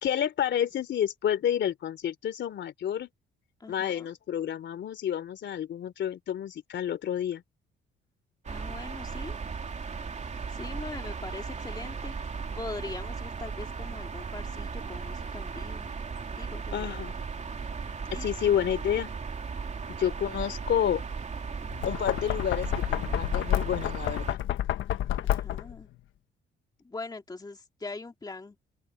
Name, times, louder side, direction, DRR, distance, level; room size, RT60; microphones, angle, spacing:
voice 1, 0.0-3.1 3.7-7.4 16.7-17.1 18.1-19.1 20.0-21.0 21.8-24.4, left 9 dB, 65° left, 3.2 m, -29 dB
voice 2, 3.6-4.1 8.5-9.4 10.5-15.9 16.4-16.9 18.1-18.3 25.2-25.9 26.8-28.6, left 3 dB, 20° left, 2.1 m, -42 dB
sound 1, 8.4-24.3, right 5 dB, 35° right, 3.3 m, -36 dB
Knock, 21.7-25.8, left 12 dB, 80° left, 1.4 m, -30 dB
open air
cardioid pair, 90°, 20 cm